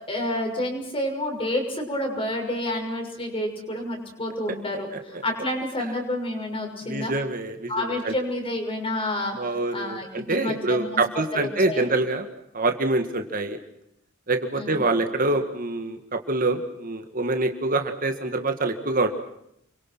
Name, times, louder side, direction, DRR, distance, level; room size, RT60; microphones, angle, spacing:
voice 1, 0.1-7.1 7.7-10.9 11.3-11.9 14.5-14.8, left 1 dB, 25° left, 3 dB, 6.3 m, -29 dB
voice 2, 6.9-8.1 9.4-12.3 12.5-13.6 14.3-19.1, right 2 dB, 40° right, 6 dB, 1.9 m, -25 dB
30.0 x 24.0 x 6.2 m, 0.76 s
head